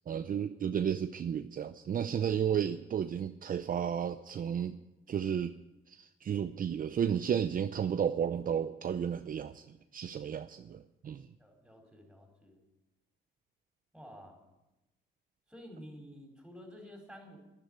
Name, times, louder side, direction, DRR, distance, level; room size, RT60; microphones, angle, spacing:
voice 1, 0.1-4.8 5.1-5.5 5.9-11.3, right 8 dB, 45° right, 10 dB, 0.6 m, -33 dB
voice 2, 11.4-12.6 13.9-14.4 15.5-17.4, equal, 5° right, 1 dB, 5.2 m, -51 dB
11.5 x 11.0 x 9.7 m, 0.97 s
cardioid pair, 90°, 20 cm